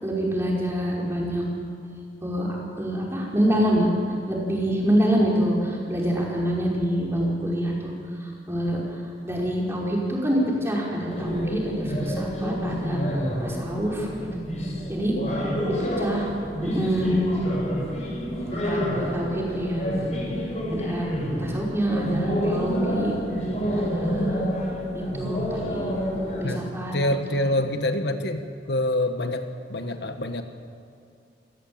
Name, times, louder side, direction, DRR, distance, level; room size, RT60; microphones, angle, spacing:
voice 1, 0.0-1.4 2.2-2.5 2.8-3.9 4.3-7.9 8.5-8.8 9.2-13.0 13.4-14.4 14.9-15.2 15.6-16.3 16.6-17.2 18.5-19.9 20.7-21.1 21.4-23.1 23.7-24.5 24.9-26.0 26.4-26.9, equal, 15° right, -3 dB, 5.4 m, -26 dB
sound 1, 11.1-26.4, equal, 40° left, 7.1 m, -28 dB
voice 2, 15.1-15.6 16.8-16.9 26.4-26.6 26.9-29.4 29.7-30.4, left 1 dB, 75° left, 7 dB, 1.5 m, -26 dB
28.5 x 16.0 x 8.8 m, 2.5 s
head